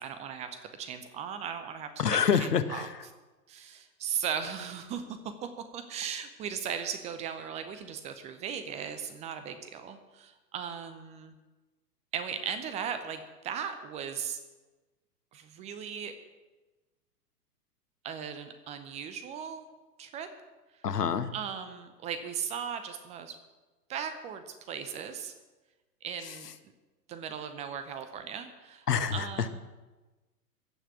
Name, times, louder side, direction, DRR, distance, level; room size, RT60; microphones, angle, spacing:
voice 1, 0.0-2.9 3.5-11.4 12.1-14.4 15.3-16.1 18.0-19.6 20.0-20.3 21.3-23.4 23.9-25.3 26.0-26.5 27.1-28.9 29.1-29.6, right 7 dB, 15° right, 9 dB, 0.6 m, -37 dB
voice 2, 2.0-2.9 20.8-21.3 28.9-29.3, left 7 dB, 75° left, 12 dB, 1.2 m, -26 dB
15.0 x 5.8 x 8.3 m, 1.2 s
figure-of-eight pair, 110°, 48 cm